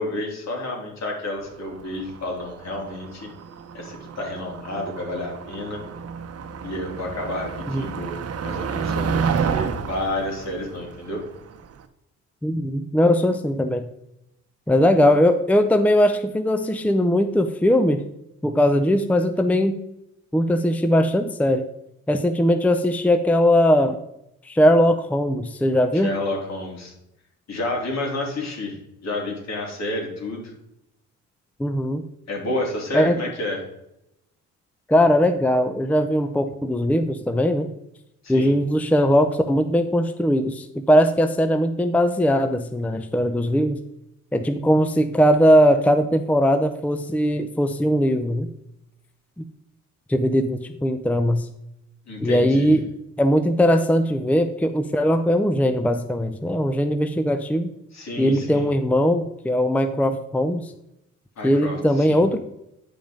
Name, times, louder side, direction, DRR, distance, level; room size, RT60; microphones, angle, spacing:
voice 1, 0.0-3.3 3.7-5.8 6.6-11.2 25.9-26.9 27.5-30.5 32.3-33.6 38.2-38.5 52.0-52.7 57.9-58.7 61.4-62.2, left 1 dB, 60° left, 0 dB, 3.4 m, -30 dB
Motor vehicle (road), 1.5-11.8, right 6 dB, 55° right, 0.9 m, -30 dB
voice 2, 12.4-13.9 14.7-18.0 18.4-19.8 20.3-21.6 22.1-24.0 24.4-26.2 31.6-32.0 32.9-33.2 34.9-37.7 38.3-43.8 44.3-48.5 50.1-51.5 52.2-52.9 53.2-57.7 58.2-60.7 61.4-62.4, equal, 5° left, 8 dB, 0.6 m, -20 dB
8.9 x 5.4 x 5.1 m, 0.84 s
cardioid pair, 90°, 30 cm